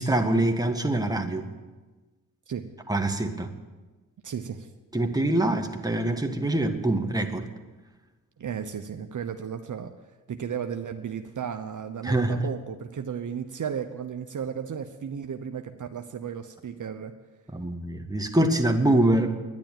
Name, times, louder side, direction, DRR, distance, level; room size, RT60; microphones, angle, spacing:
voice 1, 0.0-1.5 2.9-3.5 4.9-7.5 12.0-12.4 17.5-19.3, right 1 dB, 10° right, 4 dB, 1.8 m, -24 dB
voice 2, 4.2-4.7 8.4-9.9 10.3-17.1, right 7 dB, 55° right, 6 dB, 0.9 m, -34 dB
10.5 x 10.5 x 9.1 m, 1.2 s
supercardioid pair, 50°, 37 cm